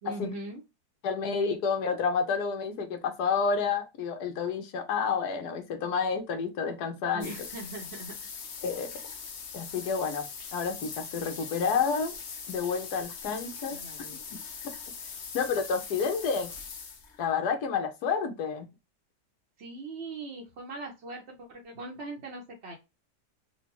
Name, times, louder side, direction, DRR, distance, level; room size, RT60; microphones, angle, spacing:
voice 1, 0.0-0.6 7.1-8.5 13.7-14.2 19.6-22.8, right 2 dB, 50° right, 0.9 m, -41 dB
voice 2, 1.0-7.3 8.6-8.9 9.5-12.1 12.5-13.8 14.3-14.4 15.3-16.5 17.2-18.7, left 5 dB, 75° left, 1.3 m, -29 dB
sound 1, 7.2-17.3, left 5 dB, 55° left, 0.8 m, -41 dB
4.0 x 2.2 x 2.9 m
omnidirectional pair, 1.8 m